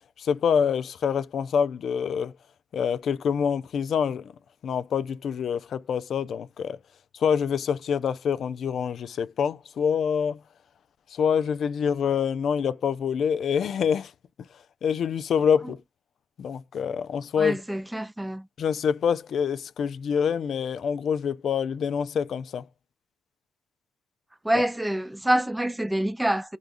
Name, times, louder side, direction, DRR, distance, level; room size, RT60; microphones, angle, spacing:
voice 1, 0.2-2.3 2.7-4.3 4.6-6.8 7.2-10.4 11.1-14.1 14.8-15.8 16.4-17.6 18.6-22.7 24.5-24.6, left 7 dB, 60° left, 0.4 m, -26 dB
voice 2, 17.4-18.5 24.4-26.6, right 1 dB, 5° right, 0.4 m, -26 dB
5.0 x 2.3 x 2.5 m
cardioid pair, 90°, 0 cm